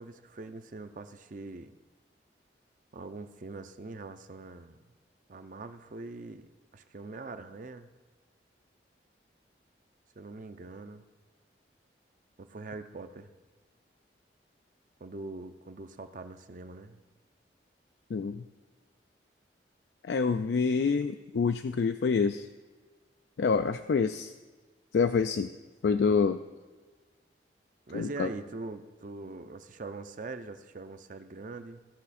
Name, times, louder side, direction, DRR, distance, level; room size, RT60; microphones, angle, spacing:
voice 1, 0.0-1.8 2.9-4.8 5.3-7.9 10.2-11.1 12.4-13.3 15.0-17.0 27.9-31.9, right 3 dB, 45° right, 9 dB, 0.6 m, -43 dB
voice 2, 18.1-18.4 20.0-22.5 23.4-24.3 24.9-25.5 25.8-26.4 27.9-28.3, left 5 dB, 70° left, 8 dB, 0.4 m, -27 dB
16.0 x 5.8 x 4.2 m, 1.3 s
head